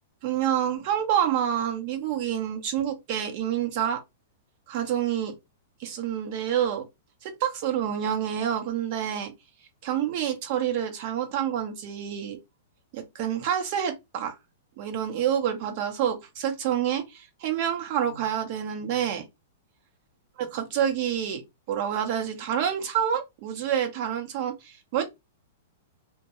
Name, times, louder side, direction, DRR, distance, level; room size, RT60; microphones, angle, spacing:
voice 1, 0.2-4.0 4.7-5.3 5.8-6.8 7.2-9.3 9.8-12.4 12.9-14.3 14.8-19.2 20.4-21.4 21.7-25.1, right 9 dB, 50° right, 0.8 m, -28 dB
2.2 x 2.2 x 2.9 m
hypercardioid pair, 110°, 0 cm